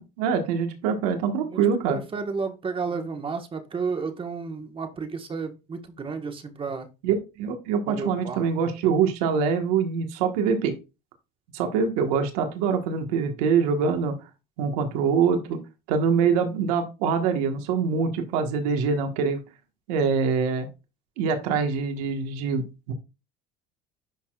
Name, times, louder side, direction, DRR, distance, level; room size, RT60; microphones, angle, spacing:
voice 1, 0.0-2.0 7.0-10.7 11.5-14.1 14.6-15.6 15.9-19.4 19.9-20.7 21.2-22.9, right 6 dB, 80° right, 5 dB, 1.5 m, -24 dB
voice 2, 1.9-6.9 7.9-8.4, right 4 dB, 25° right, 5 dB, 1.4 m, -32 dB
11.0 x 4.2 x 2.4 m, 0.27 s
supercardioid pair, 95°, 19 cm